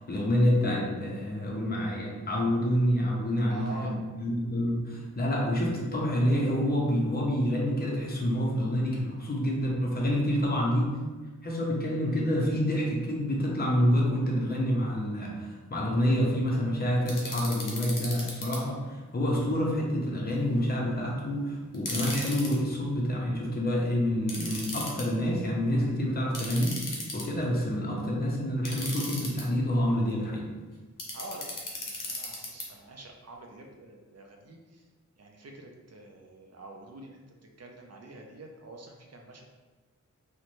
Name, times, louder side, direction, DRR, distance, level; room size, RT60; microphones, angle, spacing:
voice 1, 0.0-11.0 11.4-26.7 27.1-30.5, equal, 30° left, -3 dB, 0.5 m, -27 dB
voice 2, 3.5-4.0 31.1-34.9 35.2-37.2 37.6-39.5, right 1 dB, 55° right, 2 dB, 0.4 m, -46 dB
sound 1, 17.1-18.6 21.7-22.5 24.3-25.0 26.3-27.4 28.6-29.4 31.0-32.6, left 2 dB, 80° left, 0.6 m, -36 dB
2.6 x 2.1 x 3.0 m, 1.3 s
wide cardioid pair, 60°, 31 cm